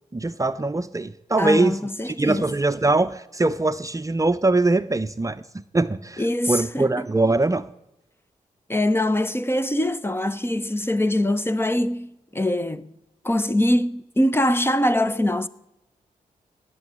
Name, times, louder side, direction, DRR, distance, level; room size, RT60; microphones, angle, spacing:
voice 1, 0.1-1.8 2.0-7.7, right 2 dB, 25° right, 0.6 m, -22 dB
voice 2, 1.4-2.6 6.2-7.0 8.7-12.9 13.2-15.5, left 1 dB, 15° left, 0.8 m, -23 dB
18.0 x 7.1 x 9.9 m
cardioid pair, 65°, 14 cm